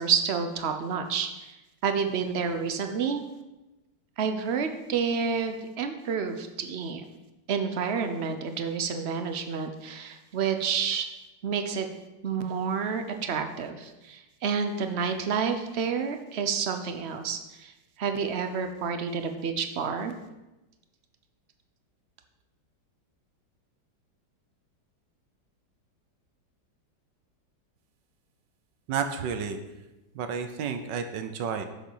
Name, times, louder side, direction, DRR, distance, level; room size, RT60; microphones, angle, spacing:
voice 1, 0.0-1.6 1.8-3.2 4.2-7.0 7.5-11.1 11.4-11.9 12.2-17.7 18.0-20.1, right 6 dB, 50° right, 7 dB, 0.8 m, -29 dB
voice 2, 28.9-29.6 30.1-31.7, right 6 dB, 85° right, 7 dB, 1.5 m, -31 dB
7.3 x 7.3 x 5.5 m, 1.0 s
omnidirectional pair, 1.9 m